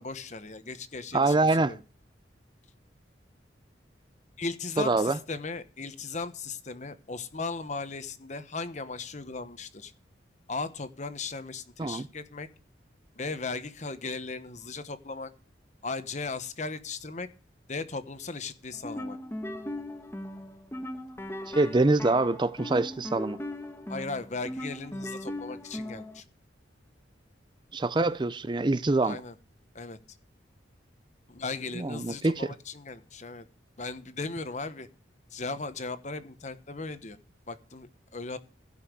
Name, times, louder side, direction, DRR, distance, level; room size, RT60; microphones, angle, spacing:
voice 1, 0.0-1.8 4.4-9.9 10.5-12.5 13.2-15.3 15.8-17.3 17.7-19.2 23.9-26.2 29.0-29.3 29.7-30.0 31.3-33.5 33.8-34.9 35.3-37.2 37.5-38.4, left 3 dB, 40° left, 1.1 m, -37 dB
voice 2, 1.1-1.8 4.8-5.2 11.8-12.1 21.5-23.4 27.7-29.2 31.8-32.5, right 2 dB, 25° right, 0.5 m, -25 dB
sound 1, 18.7-26.2, left 1 dB, 15° left, 1.3 m, -38 dB
16.0 x 5.7 x 6.6 m
head